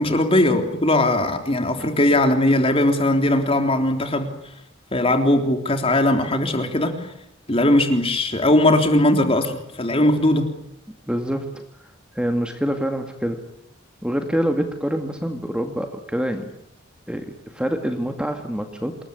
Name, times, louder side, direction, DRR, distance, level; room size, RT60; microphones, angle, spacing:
voice 1, 0.0-4.3 4.9-7.1 7.5-10.5, left 1 dB, 30° left, 5 dB, 3.6 m, -19 dB
voice 2, 11.1-11.6 12.1-13.4 14.0-16.5 17.1-19.1, equal, 5° right, 5 dB, 2.1 m, -26 dB
27.5 x 21.0 x 9.9 m, 0.78 s
head